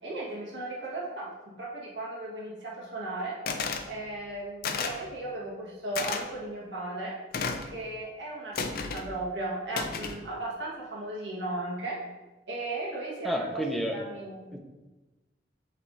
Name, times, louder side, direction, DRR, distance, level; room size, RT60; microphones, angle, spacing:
voice 1, 0.0-1.3 1.6-3.4 3.8-7.2 7.6-12.0 12.5-14.5, right 2 dB, 75° right, -5 dB, 1.9 m, -36 dB
sound 1, 3.5-3.9 4.6-5.0 5.9-6.2 7.3-7.7 8.5-9.1 9.7-10.2, left 4 dB, 55° left, 0.6 m, -32 dB
voice 2, 13.2-14.0 14.5-14.6, right 1 dB, ahead, 1 dB, 0.7 m, -30 dB
8.3 x 3.5 x 4.2 m, 1.1 s
head